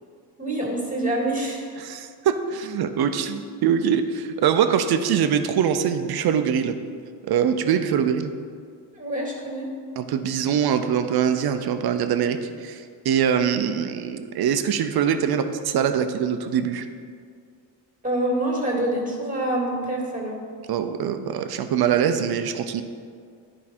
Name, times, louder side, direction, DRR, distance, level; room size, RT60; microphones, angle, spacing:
voice 1, 0.4-1.7 8.9-9.7 18.0-20.4, right 1 dB, 15° right, -2 dB, 2.3 m, -26 dB
voice 2, 1.8-6.8 7.2-8.3 10.0-16.9 20.7-22.8, right 8 dB, 55° right, 9 dB, 0.7 m, -23 dB
10.5 x 5.0 x 4.3 m, 2.2 s
cardioid pair, 80°, 44 cm